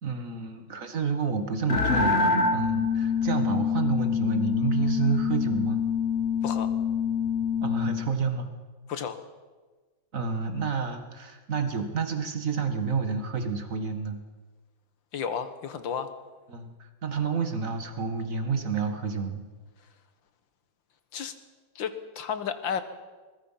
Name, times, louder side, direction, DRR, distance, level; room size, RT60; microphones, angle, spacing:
voice 1, 0.0-5.8 7.6-8.5 10.1-14.2 16.5-19.5, right 5 dB, 40° right, 6 dB, 2.1 m, -29 dB
sound 1, 1.7-8.1, left 6 dB, 35° left, 1.4 m, -26 dB
voice 2, 8.9-9.2 15.1-16.1 21.1-21.3 21.8-22.8, left 7 dB, 65° left, 10 dB, 2.0 m, -32 dB
23.0 x 20.5 x 5.8 m, 1.4 s
omnidirectional pair, 2.3 m